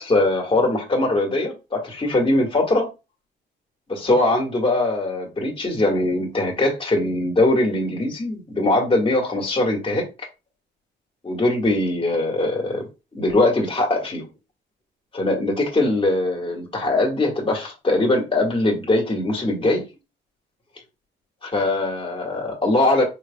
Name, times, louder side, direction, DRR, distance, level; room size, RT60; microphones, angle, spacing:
voice 1, 0.0-2.9 3.9-10.1 11.2-14.3 15.1-19.9 21.4-23.0, left 2 dB, 25° left, 1.7 m, -21 dB
4.6 x 3.3 x 2.3 m
cardioid pair, 90°, 20 cm